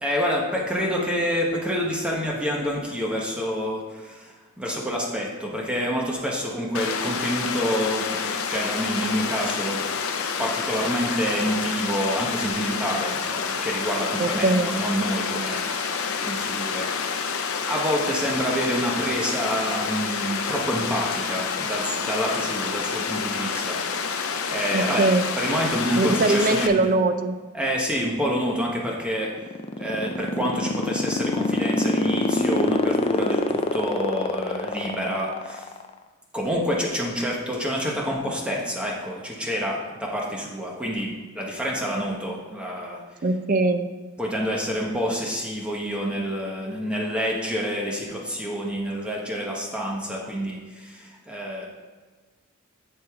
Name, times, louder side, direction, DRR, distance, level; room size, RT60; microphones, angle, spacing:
voice 1, 0.0-9.8 10.4-15.9 16.2-16.9 17.6-24.1 24.5-25.1 25.4-26.9 27.5-29.3 29.8-35.7 36.3-43.0 44.2-51.7, equal, 5° right, -2 dB, 1.0 m, -28 dB
Water, 6.7-26.7, left 5 dB, 70° left, 0.6 m, -28 dB
voice 2, 14.2-14.7 24.7-25.2 26.0-27.4 43.2-43.9, right 3 dB, 40° right, 9 dB, 0.5 m, -21 dB
sound 1, 29.3-35.9, left 3 dB, 30° left, 0.4 m, -24 dB
7.8 x 7.5 x 3.6 m, 1.4 s
head